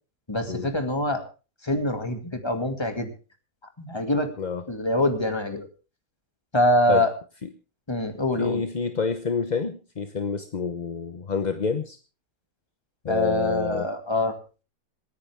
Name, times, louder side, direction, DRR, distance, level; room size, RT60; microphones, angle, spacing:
voice 1, 0.3-1.2 1.6-3.1 3.8-4.3 4.7-5.7 6.5-7.1 7.9-8.6 13.1-14.3, left 1 dB, 15° left, 6 dB, 2.2 m, -24 dB
voice 2, 8.4-12.0 13.0-13.9, left 5 dB, 35° left, 8 dB, 0.8 m, -28 dB
27.0 x 9.8 x 3.5 m, 0.34 s
omnidirectional pair, 1.7 m